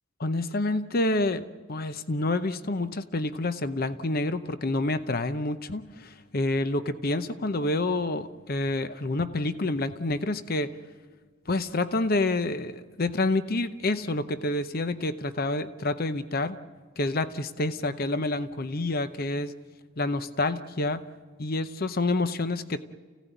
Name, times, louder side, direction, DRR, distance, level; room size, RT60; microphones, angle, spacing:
voice 1, 0.2-1.4 1.7-10.7 11.5-16.6 17.0-19.5 20.0-21.0 21.4-22.8, left 2 dB, 45° left, 11 dB, 0.8 m, -28 dB
29.5 x 16.5 x 9.1 m, 1.5 s
head